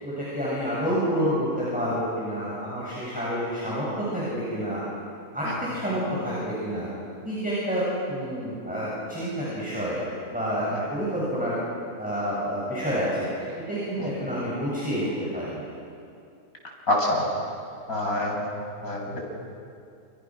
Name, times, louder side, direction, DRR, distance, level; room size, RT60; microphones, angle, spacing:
voice 1, 0.0-4.8 5.3-6.9 7.2-10.0 10.3-11.6 12.0-13.3 13.7-15.7, equal, 5° right, -8 dB, 7.8 m, -28 dB
voice 2, 16.9-17.3 17.9-18.4 18.8-19.2, left 1 dB, 80° left, -2 dB, 6.9 m, -26 dB
30.0 x 28.0 x 6.5 m, 2.5 s
omnidirectional pair, 1.5 m